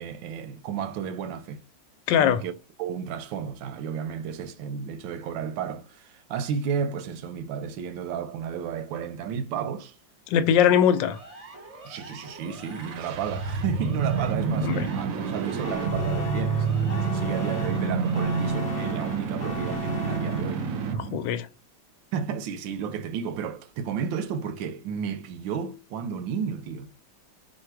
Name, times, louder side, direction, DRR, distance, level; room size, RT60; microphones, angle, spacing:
voice 1, 0.0-1.6 2.2-2.5 2.8-9.9 11.8-20.7 22.1-26.9, right 7 dB, 85° right, 1.3 m, -32 dB
voice 2, 2.1-2.4 10.3-11.2 14.6-14.9 21.0-21.5, left 9 dB, 80° left, 1.2 m, -21 dB
Siren, 10.9-18.8, right 2 dB, 30° right, 0.7 m, -45 dB
sound 1, 12.6-21.2, right 5 dB, 70° right, 0.8 m, -28 dB
sound 2, 15.6-20.9, left 4 dB, 50° left, 0.8 m, -38 dB
4.9 x 2.1 x 4.5 m
omnidirectional pair, 2.0 m